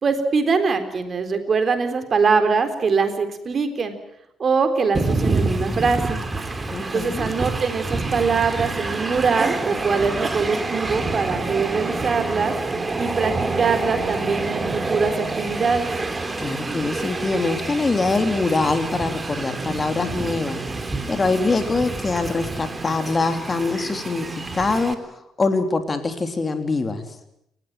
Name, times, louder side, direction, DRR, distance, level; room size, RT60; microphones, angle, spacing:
voice 1, 0.0-3.9 4.4-6.2 6.8-12.6 12.9-15.9, right 5 dB, 45° right, 8 dB, 3.9 m, -22 dB
Train, 4.9-24.9, right 3 dB, 25° right, 3.1 m, -27 dB
voice 2, 6.7-7.3 16.4-20.6 21.1-27.0, left 3 dB, 30° left, 7 dB, 3.4 m, -23 dB
29.5 x 15.0 x 9.1 m, 0.77 s
hypercardioid pair, 45°, 0 cm